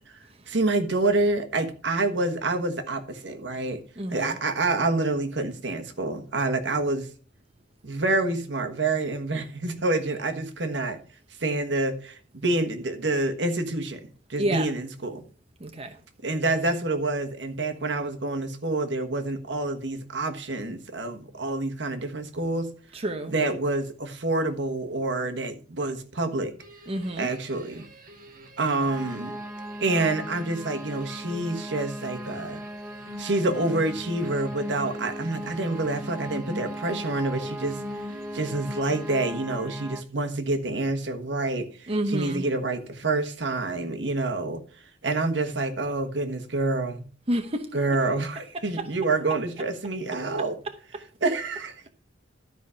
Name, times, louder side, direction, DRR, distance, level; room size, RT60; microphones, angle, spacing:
voice 1, 0.5-3.8 4.1-7.1 7.8-11.0 11.4-15.2 16.2-22.7 23.3-26.5 27.2-27.8 28.6-29.3 29.8-32.6 33.2-37.8 38.3-44.6 45.0-47.0 47.7-50.6 51.2-51.9, right 2 dB, 70° right, 1.4 m, -27 dB
voice 2, 4.0-4.4 14.4-14.7 15.6-16.0 22.9-23.3 26.9-27.3 41.9-42.5 47.3-47.7 48.8-48.9, right 1 dB, 35° right, 0.9 m, -29 dB
sound 1, 26.6-39.8, equal, 50° right, 1.7 m, -44 dB
sound 2, 28.9-40.0, equal, 10° right, 0.4 m, -38 dB
12.5 x 5.0 x 5.7 m
head